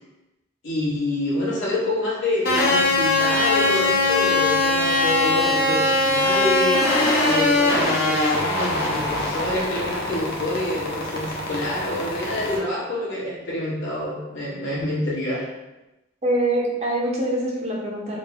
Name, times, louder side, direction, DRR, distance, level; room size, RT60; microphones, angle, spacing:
voice 1, 0.6-6.8 7.2-15.5, left 1 dB, 80° left, -7 dB, 1.5 m, -27 dB
sound 1, 2.5-12.6, left 2 dB, 50° left, 0.8 m, -21 dB
voice 2, 16.2-18.2, right 1 dB, 35° right, -3 dB, 0.7 m, -24 dB
3.7 x 2.2 x 4.0 m, 1.0 s
head